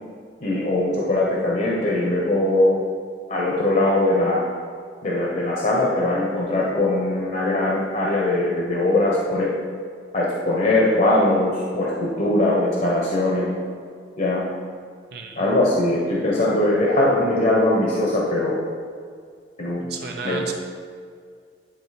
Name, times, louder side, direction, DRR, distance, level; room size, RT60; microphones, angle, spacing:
voice 1, 0.4-2.8 3.3-4.4 5.0-9.5 10.1-13.5 14.2-14.4 15.4-18.6 19.6-19.8 20.2-20.5, left 1 dB, 45° left, -4 dB, 1.0 m, -21 dB
voice 2, 15.1-15.5 19.8-20.5, right 4 dB, 60° right, 2 dB, 0.6 m, -33 dB
9.9 x 3.9 x 4.2 m, 2.1 s
head